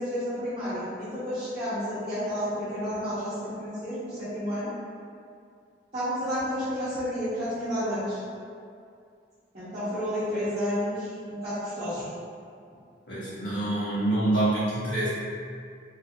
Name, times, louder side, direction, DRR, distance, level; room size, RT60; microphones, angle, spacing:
voice 1, 0.0-4.7 5.9-8.2 9.5-12.1, equal, 40° right, -16 dB, 0.8 m, -31 dB
voice 2, 13.1-15.1, right 2 dB, 80° left, -11 dB, 1.4 m, -26 dB
3.2 x 2.5 x 2.9 m, 2.3 s
head